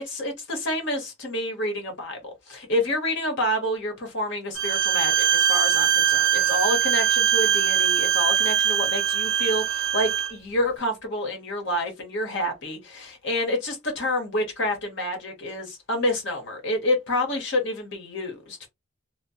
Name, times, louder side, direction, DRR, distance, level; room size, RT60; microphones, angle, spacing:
voice 1, 0.0-18.7, left 1 dB, 55° left, 1.0 m, -28 dB
Bowed string instrument, 4.6-10.3, right 9 dB, 65° right, 0.4 m, -22 dB
2.8 x 2.0 x 2.7 m
head